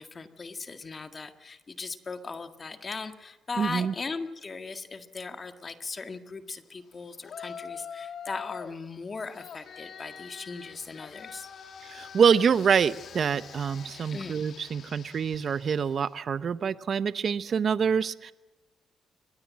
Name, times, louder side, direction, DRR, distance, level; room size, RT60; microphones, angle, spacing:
voice 1, 0.0-11.5 14.1-14.4, left 4 dB, 35° left, 8 dB, 1.8 m, -38 dB
voice 2, 3.6-3.9 11.9-18.3, right 7 dB, 55° right, 15 dB, 0.9 m, -26 dB
Yell, 7.2-8.8 9.3-16.1, left 7 dB, 60° left, 2.2 m, -45 dB
23.0 x 21.0 x 7.5 m, 1.1 s
cardioid pair, 85°, 0 cm